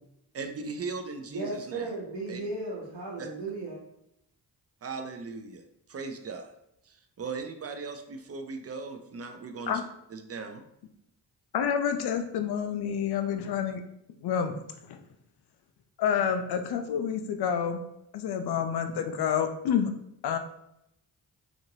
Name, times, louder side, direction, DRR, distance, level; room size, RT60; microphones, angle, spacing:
voice 1, 0.3-1.9 2.3-2.4 3.2-3.3 4.8-5.6 5.9-6.5 6.9-9.8 10.1-10.6, right 4 dB, 35° right, 6 dB, 0.5 m, -38 dB
voice 2, 1.3-3.8, right 2 dB, 60° right, -7 dB, 1.1 m, -35 dB
voice 3, 11.5-13.8 14.2-14.5 14.9-15.0 16.0-17.8 18.1-19.9 20.2-20.4, left 8 dB, 60° left, 7 dB, 0.5 m, -28 dB
2.9 x 2.5 x 2.7 m, 0.79 s
supercardioid pair, 50°, 45 cm